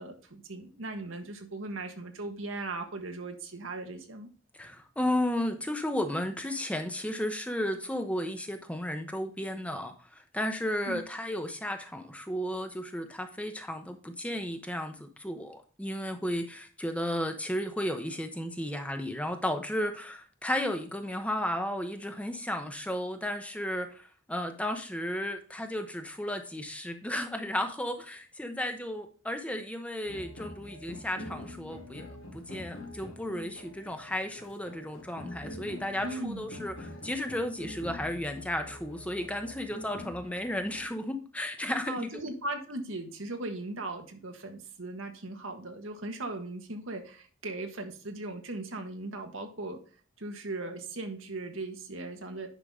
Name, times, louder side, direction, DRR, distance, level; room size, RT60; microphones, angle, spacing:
voice 1, 0.0-4.3 10.8-11.0 36.0-36.5 41.9-49.8 50.2-52.5, right 2 dB, 80° right, 5 dB, 1.6 m, -38 dB
voice 2, 4.6-32.1 32.3-42.1, left 1 dB, 5° left, 6 dB, 0.9 m, -34 dB
sound 1, 30.0-40.8, left 1 dB, 80° left, 2.4 m, -45 dB
9.9 x 5.8 x 3.7 m, 0.39 s
head